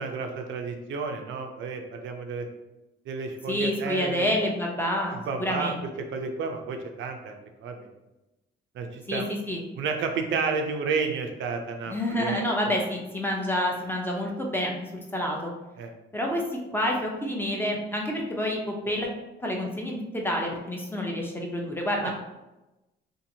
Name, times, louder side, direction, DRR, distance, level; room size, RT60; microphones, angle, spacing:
voice 1, 0.0-2.5 3.1-4.4 5.1-5.7 6.1-7.4 7.6-7.9 8.7-9.3 9.8-12.7 15.8-15.9 22.0-22.1, right 4 dB, 70° right, 4 dB, 0.4 m, -31 dB
voice 2, 3.5-5.8 9.1-9.6 11.9-14.8 15.1-15.5 16.1-19.1 19.4-22.1, left 1 dB, 10° left, 0 dB, 0.6 m, -28 dB
2.7 x 2.5 x 2.7 m, 1.0 s
cardioid pair, 90°, 20 cm